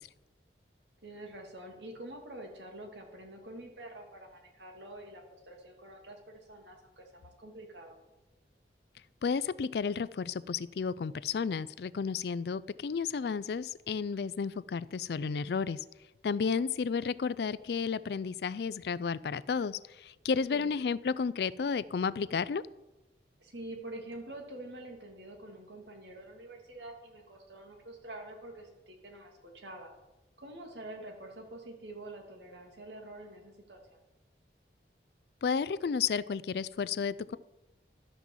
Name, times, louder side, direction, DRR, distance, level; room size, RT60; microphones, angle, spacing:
voice 1, 1.0-8.0 16.5-16.7 20.5-20.7 23.4-29.9 30.4-34.0, right 1 dB, 85° right, 2 dB, 2.5 m, -47 dB
voice 2, 9.2-15.8 16.2-22.6 35.4-37.4, left 5 dB, 70° left, 19 dB, 0.4 m, -32 dB
12.0 x 6.1 x 7.2 m, 1.0 s
head